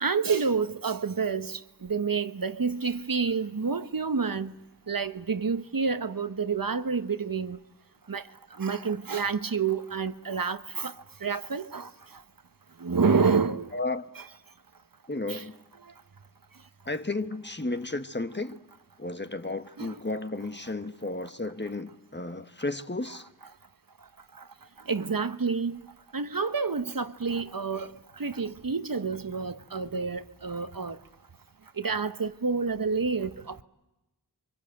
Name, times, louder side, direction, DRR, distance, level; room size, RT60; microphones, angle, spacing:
voice 1, 0.0-4.5 4.9-7.6 8.1-8.2 8.6-10.9 11.2-11.9 12.8-13.7 15.3-15.4 19.8-19.9 24.9-25.8 26.1-27.9 28.2-31.0 31.8-33.6, right 5 dB, 55° right, 1.2 m, -28 dB
voice 2, 13.7-14.1 15.1-15.6 16.8-18.6 19.0-23.3, left 2 dB, 25° left, 1.4 m, -33 dB
28.5 x 24.0 x 7.9 m
wide cardioid pair, 45°, 40 cm